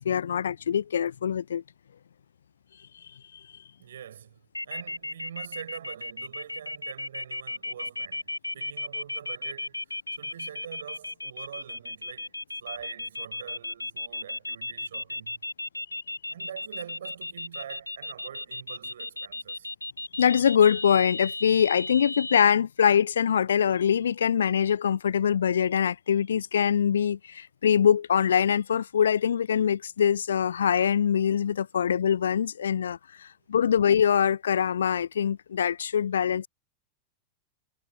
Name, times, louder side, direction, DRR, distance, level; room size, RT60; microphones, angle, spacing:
voice 1, 0.0-1.6 20.2-33.0 33.5-36.5, left 8 dB, 65° left, 0.3 m, -23 dB
voice 2, 3.8-12.3 12.6-15.4 16.3-19.7, right 9 dB, 65° right, 5.9 m, -44 dB
sound 1, 4.5-22.4, left 2 dB, 85° left, 1.3 m, -35 dB
figure-of-eight pair, 90°, 0 cm